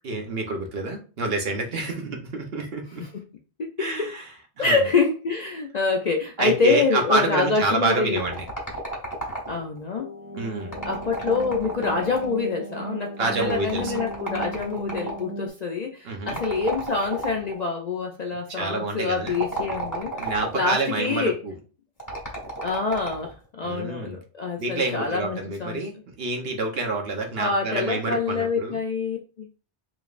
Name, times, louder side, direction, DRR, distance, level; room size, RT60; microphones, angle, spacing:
voice 1, 0.0-3.0 3.8-4.3 4.6-4.8 6.4-8.4 10.3-10.8 13.2-14.0 16.0-16.4 18.5-19.4 20.2-21.5 23.6-24.2 24.6-28.8, right 3 dB, 60° right, 3 dB, 1.1 m, -28 dB
voice 2, 4.6-8.2 9.5-10.1 10.8-21.4 22.6-25.8 27.4-29.5, left 4 dB, 50° left, 2 dB, 0.5 m, -26 dB
sound 1, 8.2-9.8 10.6-12.4 13.4-15.2 16.3-17.6 19.2-20.7 22.0-23.3, right 2 dB, 20° left, 1.9 m, -33 dB
sound 2, 10.0-15.5, right 2 dB, 25° right, 1.5 m, -37 dB
5.0 x 3.2 x 2.5 m, 0.36 s
omnidirectional pair, 1.2 m